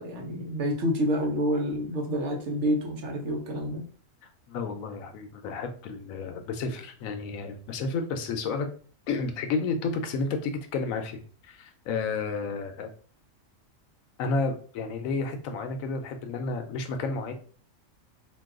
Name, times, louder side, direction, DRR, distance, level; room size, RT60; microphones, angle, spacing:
voice 1, 0.0-3.8, equal, 65° right, 2 dB, 1.0 m, -28 dB
voice 2, 4.5-8.7 9.1-12.9 14.2-17.3, left 4 dB, 85° left, 6 dB, 1.0 m, -31 dB
2.6 x 2.3 x 3.6 m, 0.41 s
omnidirectional pair, 1.4 m